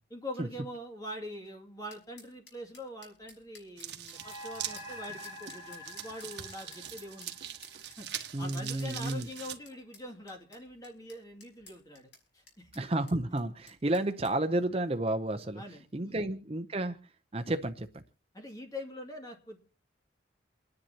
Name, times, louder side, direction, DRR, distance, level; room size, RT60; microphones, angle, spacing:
voice 1, 0.1-7.3 8.0-8.1 8.4-12.7 15.6-16.3 18.3-19.6, left 1 dB, 20° left, 2 dB, 2.4 m, -44 dB
sound 1, 1.9-14.3, left 4 dB, 65° left, 5.5 m, -56 dB
sound 2, 3.8-9.6, right 11 dB, 65° right, 1.4 m, -43 dB
sound 3, 4.1-8.8, left 1 dB, 35° left, 5.2 m, -47 dB
voice 2, 8.3-9.3 12.7-15.6 15.9-18.0, right 1 dB, 30° right, 8 dB, 0.6 m, -31 dB
28.0 x 10.5 x 2.9 m, 0.36 s
head